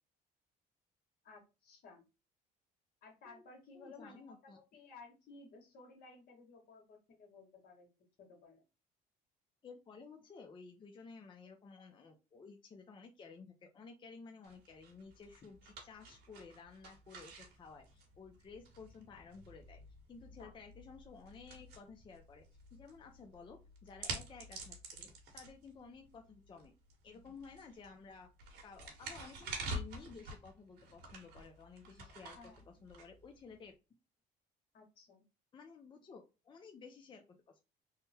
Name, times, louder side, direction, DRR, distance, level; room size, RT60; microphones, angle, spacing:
voice 1, 1.2-2.0 3.0-7.9 8.2-8.6 20.3-20.5 32.3-32.6 34.7-35.2, left 3 dB, 65° left, 2 dB, 1.5 m, -57 dB
voice 2, 3.7-4.6 9.6-19.8 20.1-22.5 22.7-26.7 27.0-28.3 28.6-33.7 35.5-37.6, left 5 dB, 30° left, 4 dB, 0.5 m, -54 dB
sound 1, 14.4-33.7, right 2 dB, 85° right, 1.4 m, -49 dB
3.6 x 2.1 x 4.2 m, 0.29 s
cardioid pair, 110°, 17 cm